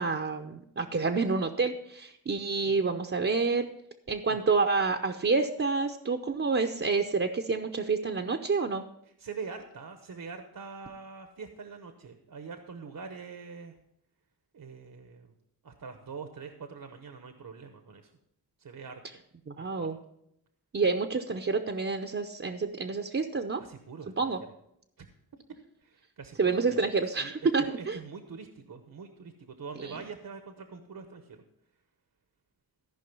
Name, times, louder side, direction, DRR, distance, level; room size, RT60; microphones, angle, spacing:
voice 1, 0.0-3.7 4.1-8.8 19.5-20.0 20.7-23.6 24.2-24.4 26.4-28.0 29.8-29.9, right 4 dB, 35° right, 4 dB, 0.7 m, -28 dB
voice 2, 9.2-13.8 14.5-15.3 15.6-18.1 18.6-19.0 19.6-19.9 23.6-24.1 25.0-25.1 25.8-26.8 27.2-31.4, right 5 dB, 65° right, 6 dB, 1.0 m, -44 dB
14.0 x 5.3 x 5.4 m, 0.78 s
cardioid pair, 60°, 36 cm